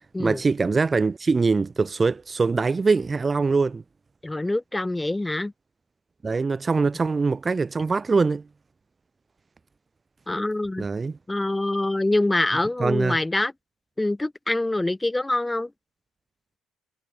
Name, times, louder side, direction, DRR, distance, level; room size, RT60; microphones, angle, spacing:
voice 1, 0.2-3.8 6.2-8.4 10.8-11.2 12.8-13.2, right 4 dB, 25° right, 0.3 m, -23 dB
voice 2, 4.2-5.5 10.3-10.9 11.3-13.5 14.0-15.7, left 2 dB, 10° left, 1.0 m, -25 dB
figure-of-eight pair, 55°, 0 cm